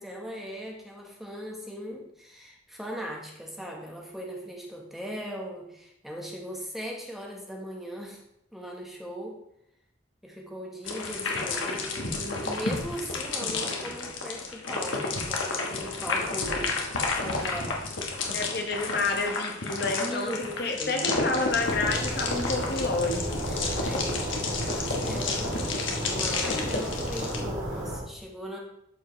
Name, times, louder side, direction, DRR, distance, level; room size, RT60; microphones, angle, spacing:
voice 1, 0.0-8.2 8.5-9.4 10.2-17.8 20.0-20.5 20.8-21.0 23.5-28.6, equal, ahead, -1 dB, 1.1 m, -39 dB
sound 1, 10.8-27.4, left 3 dB, 80° left, 1.2 m, -31 dB
voice 2, 18.3-23.4, left 3 dB, 55° left, 3 dB, 1.0 m, -29 dB
sound 2, 21.5-28.0, right 1 dB, 75° right, 1.7 m, -33 dB
12.0 x 4.6 x 3.1 m, 0.77 s
head